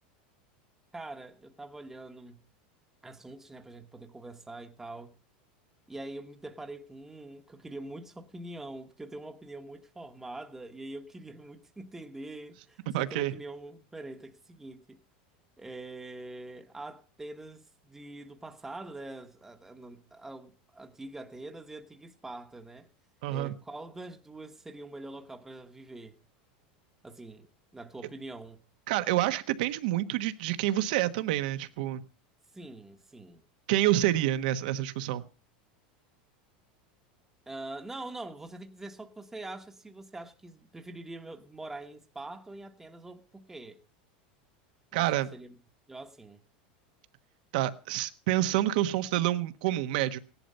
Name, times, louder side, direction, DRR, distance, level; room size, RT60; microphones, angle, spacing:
voice 1, 0.9-2.4 3.0-5.2 5.9-15.0 15.6-22.9 23.3-26.2 27.0-27.5 27.7-28.6 32.5-33.4 37.5-43.8 44.9-45.5 45.9-46.4, right 2 dB, 10° right, 1.2 m, -44 dB
voice 2, 12.9-13.3 23.2-23.5 28.9-32.0 33.7-35.2 44.9-45.3 47.5-50.2, right 14 dB, 70° right, 1.2 m, -28 dB
17.0 x 11.0 x 5.5 m
supercardioid pair, 135°, 5 cm